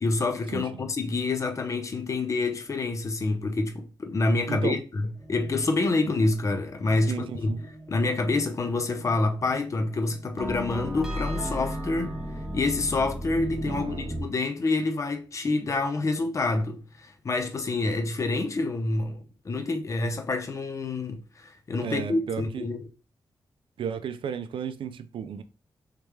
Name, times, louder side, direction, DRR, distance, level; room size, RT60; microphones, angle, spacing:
voice 1, 0.0-5.0 5.3-7.5 7.9-12.2 12.5-22.9, left 3 dB, 35° left, 0.5 m, -27 dB
voice 2, 4.5-4.8 7.1-7.6 13.7-14.1 21.8-22.7 23.8-25.4, right 7 dB, 90° right, 0.4 m, -33 dB
sound 1, 5.2-14.2, equal, 5° right, 0.8 m, -36 dB
3.3 x 3.2 x 3.2 m
wide cardioid pair, 120°, 9 cm